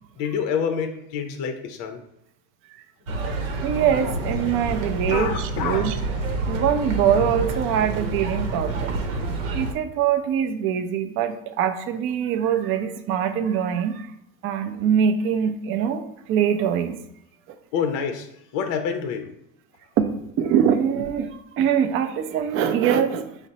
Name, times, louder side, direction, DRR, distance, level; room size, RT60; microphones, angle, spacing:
voice 1, 0.2-2.0 5.1-5.9 17.7-18.3 18.5-19.3, left 7 dB, 50° left, 6 dB, 0.5 m, -27 dB
sound 1, 3.1-9.7, right 2 dB, 85° right, 0.8 m, -28 dB
voice 2, 3.6-6.0 6.5-9.0 9.5-14.1 14.4-17.0 17.5-17.6 20.0-23.4, right 8 dB, 35° right, 8 dB, 0.4 m, -23 dB
5.0 x 2.0 x 4.0 m, 0.76 s
supercardioid pair, 110°, 39 cm